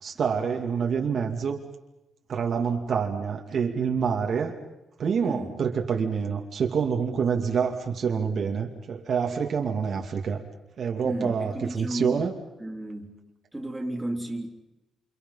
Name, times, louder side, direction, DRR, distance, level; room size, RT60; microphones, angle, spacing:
voice 1, 0.0-1.6 2.3-4.5 5.0-10.4 10.8-12.3, right 6 dB, 50° right, 2 dB, 2.6 m, -27 dB
voice 2, 5.2-5.5 11.0-12.3 12.6-13.1 13.5-14.5, right 1 dB, 5° right, 0 dB, 3.5 m, -32 dB
29.0 x 28.5 x 5.7 m, 0.95 s
cardioid pair, 155°, 0 cm